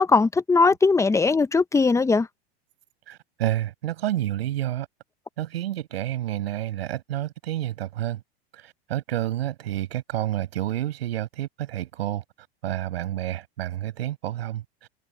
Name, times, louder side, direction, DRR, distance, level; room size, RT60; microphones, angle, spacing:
voice 1, 0.0-2.3, left 4 dB, 10° left, 0.8 m, -19 dB
voice 2, 3.1-4.9 5.4-8.2 8.5-12.2 12.6-14.9, right 13 dB, 80° right, 7.4 m, -29 dB
hypercardioid pair, 105°, 30 cm